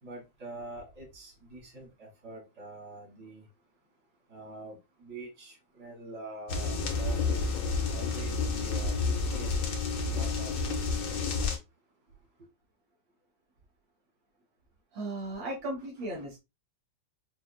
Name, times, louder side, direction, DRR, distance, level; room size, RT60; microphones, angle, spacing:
voice 1, 0.0-3.4 4.3-7.6 7.9-9.0 9.3-9.5 10.1-10.8, right 2 dB, 60° right, 2.1 m, -45 dB
sound 1, 6.5-11.6, left 4 dB, 80° left, 1.7 m, -30 dB
voice 2, 14.9-16.4, right 1 dB, 80° right, 1.8 m, -36 dB
5.8 x 2.4 x 2.2 m
omnidirectional pair, 2.0 m